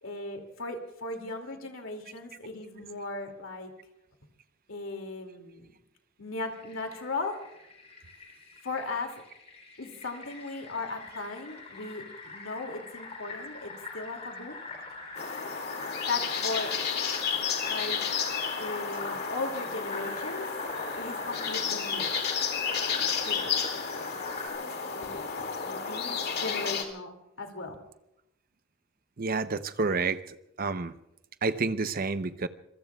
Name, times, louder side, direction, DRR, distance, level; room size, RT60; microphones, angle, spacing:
voice 1, 0.0-3.7 4.7-5.7 6.2-7.4 8.6-9.2 9.8-12.1 12.3-14.6 16.1-16.7 17.7-18.0 18.6-20.5 20.9-22.1 23.2-23.5 24.9-27.8, left 3 dB, 80° left, 4 dB, 2.5 m, -37 dB
Fill (with liquid), 6.5-24.5, left 3 dB, 30° left, 3.6 m, -43 dB
sound 1, 15.1-26.8, left 6 dB, 55° left, 2.3 m, -32 dB
voice 2, 29.2-30.2 30.6-30.9 31.4-32.5, right 3 dB, 45° right, 12 dB, 0.7 m, -29 dB
26.5 x 22.5 x 2.3 m, 0.84 s
head